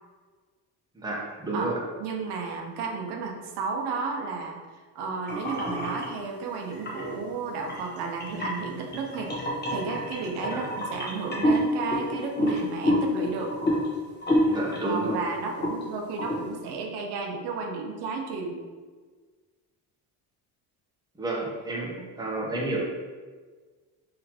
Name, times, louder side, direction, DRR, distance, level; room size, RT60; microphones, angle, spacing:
voice 1, 0.9-1.8 10.5-10.7 14.4-15.2 21.2-22.8, right 2 dB, 10° right, -3 dB, 0.8 m, -31 dB
voice 2, 2.0-9.3 9.7-13.5 14.8-18.6 22.0-22.1, right 4 dB, 75° right, 1 dB, 0.8 m, -33 dB
sound 1, 5.3-6.1 6.7-7.1 7.6-15.2 15.5-15.8 16.2-16.4, equal, 25° left, 1.1 m, -27 dB
3.9 x 2.9 x 2.9 m, 1.4 s
cardioid pair, 110°, 40 cm